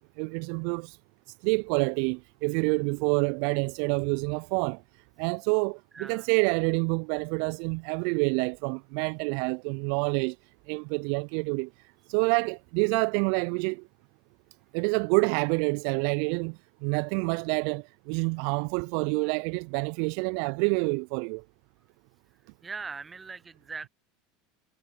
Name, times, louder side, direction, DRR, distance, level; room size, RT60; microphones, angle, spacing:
voice 1, 0.2-1.0 1.4-4.8 5.2-10.4 10.7-11.7 12.1-13.8 14.7-21.4, right 40 dB or more, 55° right, 0.4 m, -27 dB
voice 2, 5.9-6.3 22.6-23.9, right 4 dB, 20° right, 1.0 m, -40 dB
figure-of-eight pair, 80°, 0 cm